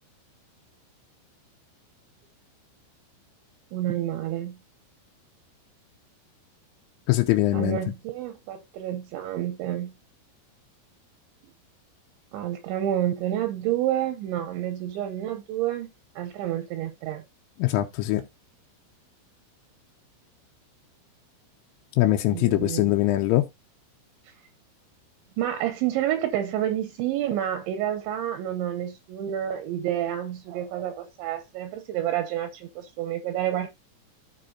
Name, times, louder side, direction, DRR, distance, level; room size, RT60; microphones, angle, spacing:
voice 1, 3.7-4.6 7.5-9.9 12.3-15.9 16.2-17.2 22.3-23.0 25.4-33.7, right 11 dB, 80° right, 2.9 m, -29 dB
voice 2, 7.1-7.8 17.6-18.2 22.0-23.4, left 16 dB, 85° left, 3.2 m, -22 dB
15.0 x 5.3 x 2.7 m
omnidirectional pair, 5.8 m